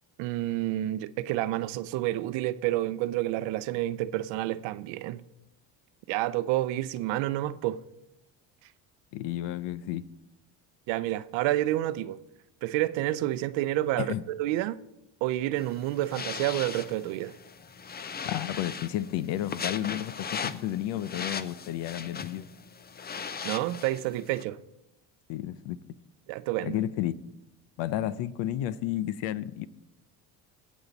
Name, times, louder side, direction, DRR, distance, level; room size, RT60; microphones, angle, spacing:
voice 1, 0.2-5.2 6.1-7.8 10.9-12.2 12.6-14.1 14.4-14.8 15.2-17.3 23.4-24.6 26.3-26.8, right 15 dB, 85° right, 0.6 m, -29 dB
voice 2, 9.1-10.1 14.0-14.2 18.2-22.5 25.3-25.8 26.6-27.2 27.8-29.7, left 12 dB, 80° left, 0.7 m, -32 dB
sound 1, 15.6-24.4, left 6 dB, 25° left, 0.5 m, -39 dB
18.5 x 7.2 x 4.0 m
cardioid pair, 95°, 44 cm